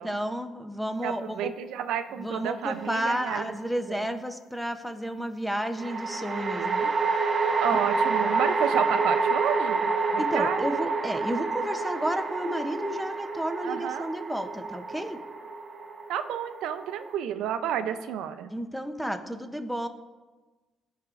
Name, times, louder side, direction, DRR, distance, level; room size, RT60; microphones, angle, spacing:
voice 1, 0.0-1.5 2.2-7.2 7.7-7.8 10.2-15.2 18.5-19.9, equal, ahead, 7 dB, 0.6 m, -32 dB
voice 2, 1.0-3.6 3.9-4.2 7.6-10.6 13.6-14.1 16.1-18.5, right 9 dB, 90° right, 10 dB, 0.5 m, -31 dB
sound 1, 2.7-3.4 5.8-17.1, right 4 dB, 45° right, 0.6 m, -28 dB
13.0 x 4.9 x 2.5 m, 1.3 s
cardioid pair, 90°, 0 cm